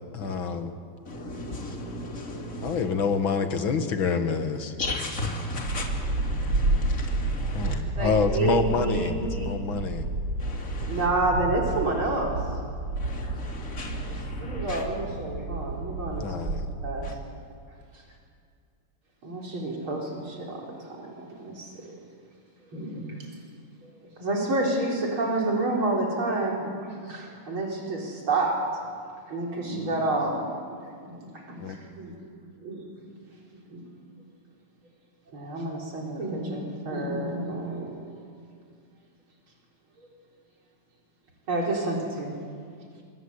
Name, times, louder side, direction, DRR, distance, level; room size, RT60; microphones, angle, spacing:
voice 1, 0.1-0.7 2.6-4.7 7.5-10.1 16.2-16.7 31.6-31.8, left 5 dB, 75° left, 7 dB, 2.5 m, -27 dB
voice 2, 1.1-2.8 4.8-7.8 10.4-11.0 13.0-14.8 17.0-17.1, left 2 dB, 40° left, 0 dB, 3.6 m, -35 dB
sound 1, 5.6-17.1, right 2 dB, 60° right, 2.6 m, -30 dB
voice 3, 8.0-9.5 10.8-12.4 14.0-16.3 16.8-17.1 19.2-22.0 22.7-23.0 23.8-23.9 24.2-26.8 27.1-28.6 29.3-30.5 31.0-32.3 32.6-32.9 33.7-33.8 35.3-37.8 41.5-42.3, right 2 dB, 85° right, -1 dB, 5.0 m, -29 dB
28.0 x 24.5 x 8.2 m, 2.2 s
omnidirectional pair, 2.2 m